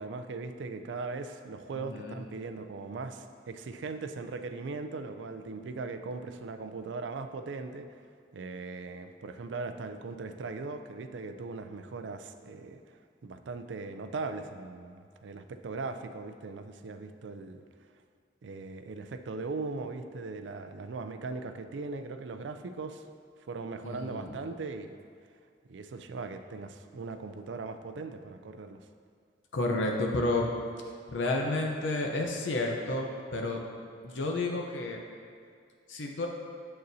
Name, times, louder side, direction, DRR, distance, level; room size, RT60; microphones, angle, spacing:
voice 1, 0.0-7.9 8.3-12.8 13.2-17.6 18.4-23.0 23.5-25.0 25.7-28.9, right 3 dB, 80° right, 8 dB, 0.4 m, -39 dB
voice 2, 1.8-2.2 23.8-24.3 29.5-30.5 31.1-33.6 34.0-35.0 35.9-36.3, left 2 dB, 90° left, 1 dB, 0.8 m, -31 dB
7.9 x 6.6 x 2.7 m, 2.2 s
head